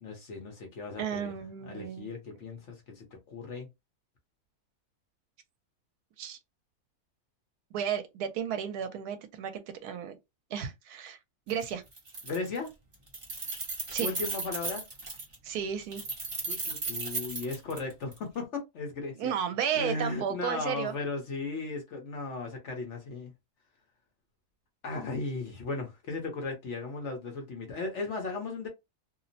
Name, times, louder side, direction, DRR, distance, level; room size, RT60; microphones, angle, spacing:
voice 1, 0.0-1.3 1.6-3.7 12.2-12.7 14.0-14.8 16.4-19.3 19.8-23.3 24.8-28.7, left 3 dB, 55° left, 0.9 m, -36 dB
voice 2, 1.0-2.1 6.2-6.4 7.7-10.2 10.5-11.2 11.5-11.8 13.9-14.1 15.4-16.0 19.2-20.9, right 8 dB, 75° right, 1.1 m, -33 dB
Keys jangling, 11.5-11.6 11.9-12.7 12.9-15.3 15.9-18.2, right 3 dB, 30° right, 0.6 m, -35 dB
2.8 x 2.0 x 2.6 m
omnidirectional pair, 1.7 m